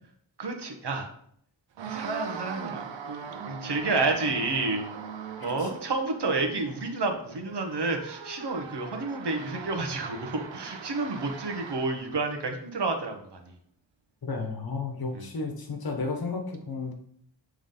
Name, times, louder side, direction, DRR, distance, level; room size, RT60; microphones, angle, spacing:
voice 1, 0.4-1.1 1.9-4.9 5.4-13.5 15.1-15.3, right 3 dB, 65° right, 4 dB, 1.2 m, -30 dB
sound 1, 1.8-12.2, right 6 dB, 80° right, 0.7 m, -41 dB
voice 2, 14.2-16.9, left 4 dB, 55° left, 3 dB, 1.2 m, -33 dB
7.1 x 3.5 x 3.8 m, 0.66 s
wide cardioid pair, 105°, 44 cm